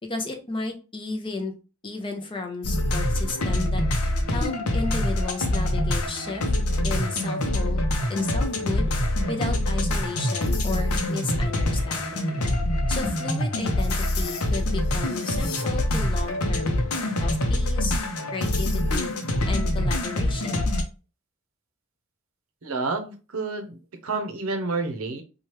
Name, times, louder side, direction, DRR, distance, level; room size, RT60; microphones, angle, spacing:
voice 1, 0.0-1.5 1.8-3.8 4.3-6.4 6.8-7.8 8.1-8.9 9.3-12.4 12.9-16.8 17.2-18.0 18.3-19.1 19.5-20.6, left 3 dB, 20° left, 3 dB, 0.5 m, -33 dB
sound 1, 2.6-20.8, left 1 dB, 85° left, 0.6 m, -25 dB
voice 2, 22.6-25.2, right 3 dB, 75° right, 6 dB, 0.6 m, -29 dB
2.9 x 2.3 x 3.1 m, 0.33 s
head